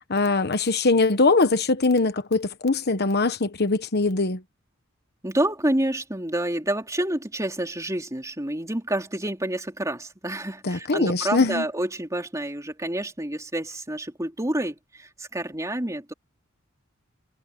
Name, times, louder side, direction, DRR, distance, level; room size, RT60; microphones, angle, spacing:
voice 1, 0.1-4.4 10.6-11.6, left 3 dB, 55° left, 1.2 m, -22 dB
voice 2, 5.2-16.1, right 1 dB, 15° right, 3.5 m, -28 dB
head